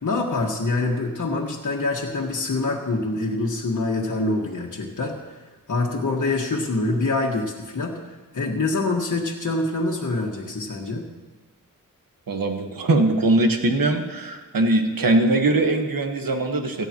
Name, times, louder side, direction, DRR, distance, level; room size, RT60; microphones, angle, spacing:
voice 1, 0.0-11.1, left 2 dB, 60° left, -2 dB, 1.6 m, -25 dB
voice 2, 12.3-16.9, right 2 dB, 80° right, 4 dB, 1.5 m, -21 dB
17.0 x 12.5 x 3.0 m, 1.2 s
wide cardioid pair, 70°, 34 cm